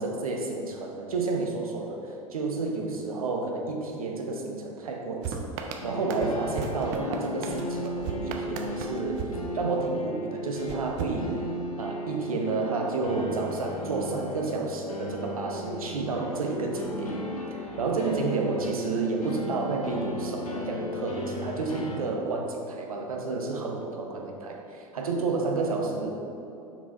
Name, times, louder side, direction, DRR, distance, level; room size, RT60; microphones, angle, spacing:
voice 1, 0.0-9.3 9.5-11.4 11.8-17.2 17.5-26.1, right 3 dB, 75° right, 1 dB, 1.0 m, -30 dB
sound 1, 5.2-10.1 10.7-11.9, right 5 dB, 45° right, 0.7 m, -37 dB
sound 2, 5.8-22.0, left 1 dB, 75° left, 1.1 m, -36 dB
5.9 x 4.7 x 4.6 m, 2.7 s
figure-of-eight pair, 85°, 19 cm